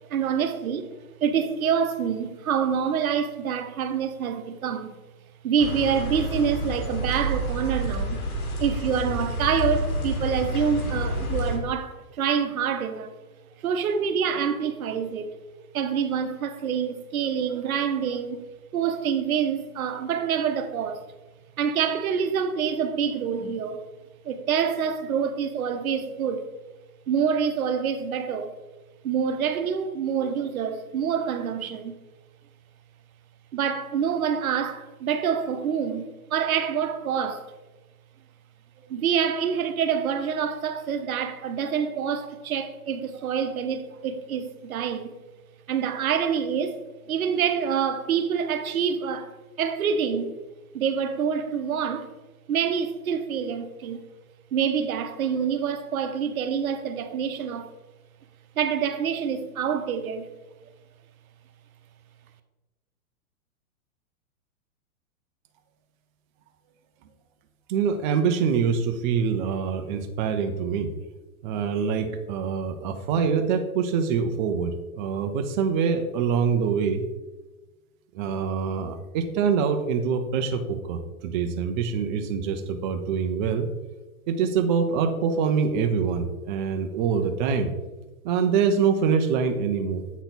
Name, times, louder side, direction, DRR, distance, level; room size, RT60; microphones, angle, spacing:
voice 1, 0.1-0.9 1.2-4.9 5.4-8.2 8.6-13.1 13.6-15.3 15.7-18.4 18.7-21.0 21.6-23.8 24.2-26.4 27.1-28.5 29.0-31.9 33.5-37.5 38.9-45.2 45.7-46.8 47.1-50.3 50.7-52.1 52.5-54.1 54.5-57.7 58.6-60.3, right 7 dB, 75° right, 0.9 m, -26 dB
sound 1, 5.6-11.6, equal, 90° left, 1.8 m, -29 dB
voice 2, 67.7-70.9 71.4-77.0 78.1-83.7 84.3-87.7 88.2-90.0, right 6 dB, 35° right, 0.6 m, -25 dB
8.0 x 4.2 x 4.0 m
hypercardioid pair, 135°, 43 cm